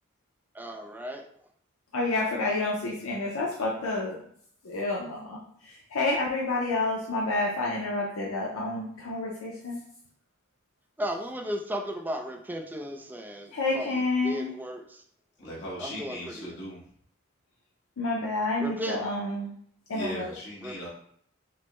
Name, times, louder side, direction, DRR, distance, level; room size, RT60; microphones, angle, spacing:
voice 1, 0.5-1.3 11.0-15.0 15.8-16.6 18.6-19.0 20.6-20.8, equal, 10° right, 2 dB, 0.4 m, -35 dB
voice 2, 1.9-4.2 4.6-9.8 13.5-14.5 18.0-19.5 19.9-20.3, left 2 dB, 90° left, -3 dB, 0.7 m, -29 dB
voice 3, 15.4-16.8 19.9-20.9, equal, 55° left, -6 dB, 1.3 m, -38 dB
6.0 x 2.1 x 3.0 m, 0.64 s
head